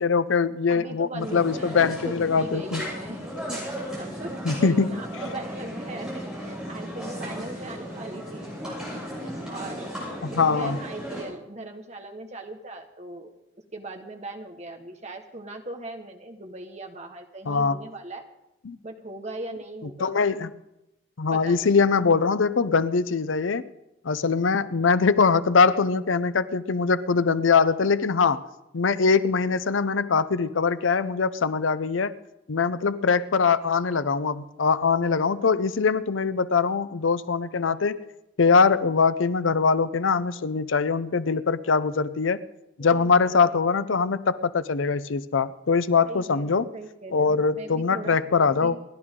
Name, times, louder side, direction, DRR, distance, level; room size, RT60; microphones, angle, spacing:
voice 1, 0.0-2.8 4.4-4.9 10.2-10.8 17.5-17.8 18.6-18.8 20.0-20.5 21.2-23.7 24.0-28.5 28.7-32.1 32.5-38.0 38.4-42.4 42.8-46.7 47.1-48.8, left 5 dB, 90° left, 15 dB, 0.6 m, -22 dB
voice 2, 0.7-3.2 3.5-3.6 3.9-9.9 10.3-13.4 13.7-18.3 18.8-20.2 21.3-21.6 42.8-43.1 46.0-48.8, right 2 dB, 35° right, 4 dB, 1.4 m, -39 dB
sound 1, 1.2-11.2, equal, 5° right, 7.4 m, -35 dB
28.0 x 11.5 x 3.8 m, 0.92 s
head